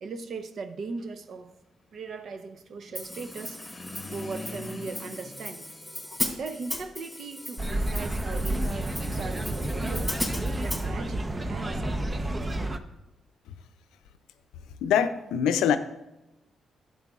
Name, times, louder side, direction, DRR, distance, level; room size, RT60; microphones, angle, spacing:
voice 1, 0.0-1.5 1.9-3.6 4.1-5.7 6.4-10.2 10.6-12.0, right 4 dB, 65° right, 0.8 m, -38 dB
sound 1, 2.9-6.5, left 2 dB, 35° left, 1.0 m, -43 dB
Hi-hat, 2.9-10.8, left 1 dB, 5° left, 3.0 m, -37 dB
sound 2, 7.6-12.8, right 1 dB, 30° right, 0.8 m, -30 dB
voice 2, 14.8-15.8, left 8 dB, 85° left, 0.5 m, -23 dB
12.0 x 8.6 x 2.4 m
supercardioid pair, 55°, 0 cm